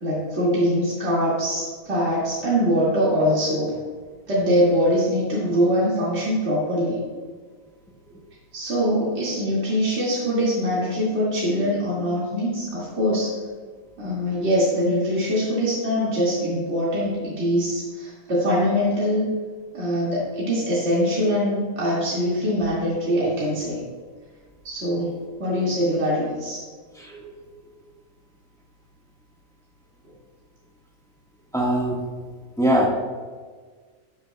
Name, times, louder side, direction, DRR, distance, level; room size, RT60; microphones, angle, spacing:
voice 1, 0.0-3.7 4.3-7.0 8.5-13.3 14.0-19.3 19.7-23.8 24.6-25.1 25.4-26.6, equal, 45° right, -8 dB, 2.3 m, -23 dB
voice 2, 27.0-27.3 31.5-32.0 32.6-32.9, right 1 dB, ahead, -3 dB, 1.2 m, -21 dB
11.5 x 8.5 x 2.2 m, 1.5 s
omnidirectional pair, 1.6 m